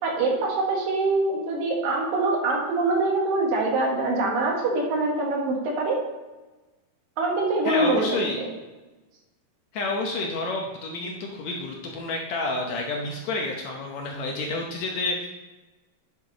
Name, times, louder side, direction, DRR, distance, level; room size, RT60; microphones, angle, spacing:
voice 1, 0.0-6.0 7.2-8.5, right 2 dB, 80° right, 0 dB, 3.3 m, -24 dB
voice 2, 7.6-8.4 9.7-15.3, left 2 dB, 70° left, 0 dB, 1.8 m, -29 dB
10.0 x 6.6 x 4.0 m, 1.2 s
omnidirectional pair, 3.9 m